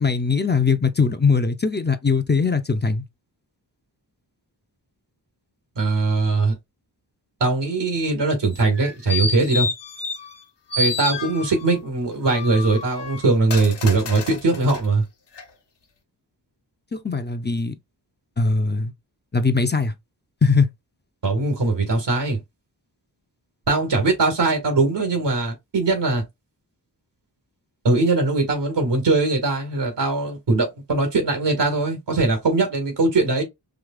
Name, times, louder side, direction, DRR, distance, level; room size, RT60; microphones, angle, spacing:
voice 1, 0.0-3.0 16.9-17.7 18.4-18.9 19.3-19.9 20.4-20.7, left 4 dB, 25° left, 0.6 m, -20 dB
voice 2, 5.8-6.6 7.4-9.7 10.8-15.0 21.2-22.4 23.7-26.2 27.8-33.4, right 3 dB, 80° right, 1.9 m, -21 dB
sound 1, 8.5-10.4 10.7-11.7 12.2-14.9 15.3-15.4, left 3 dB, 75° left, 1.2 m, -29 dB
4.9 x 2.8 x 2.3 m
wide cardioid pair, 80°, 42 cm